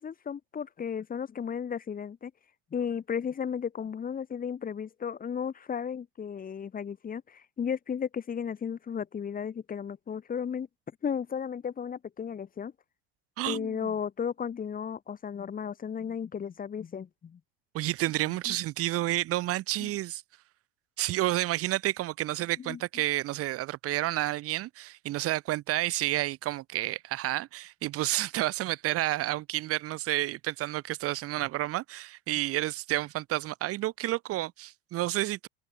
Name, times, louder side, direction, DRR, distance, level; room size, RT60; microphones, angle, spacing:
voice 1, 0.0-2.3 2.7-10.7 11.0-12.7 13.5-17.4 18.5-18.6 19.8-19.9 22.6-22.8, left 7 dB, 30° left, 5.7 m, -34 dB
voice 2, 13.4-13.9 17.7-20.2 21.0-35.5, right 16 dB, 50° right, 4.1 m, -30 dB
supercardioid pair, 100°, 29 cm